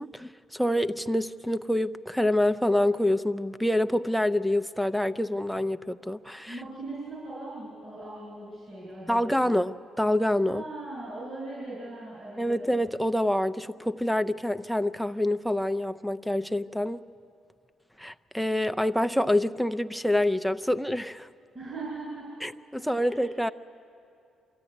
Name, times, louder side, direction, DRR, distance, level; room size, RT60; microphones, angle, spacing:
voice 1, 0.0-6.6 9.1-10.6 12.4-17.0 18.0-21.3 22.4-23.5, left 1 dB, ahead, 13 dB, 0.5 m, -26 dB
voice 2, 6.4-9.6 10.5-12.7 21.5-22.3 22.7-23.2, right 2 dB, 35° right, -5 dB, 6.1 m, -40 dB
24.5 x 14.0 x 9.7 m, 2.5 s
cardioid pair, 90°, 0 cm